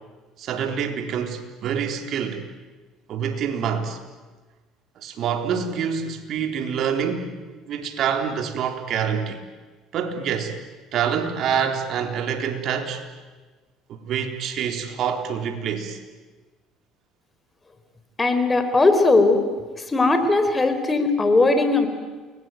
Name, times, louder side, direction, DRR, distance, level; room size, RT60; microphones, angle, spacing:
voice 1, 0.4-2.4 3.1-4.0 5.0-9.4 9.9-10.6 10.9-13.0 13.9-16.0, right 7 dB, 60° right, 5 dB, 3.8 m, -26 dB
voice 2, 18.2-19.4 19.9-21.9, left 3 dB, 20° left, 9 dB, 4.4 m, -18 dB
29.5 x 22.0 x 9.3 m, 1.3 s
supercardioid pair, 90°, 0 cm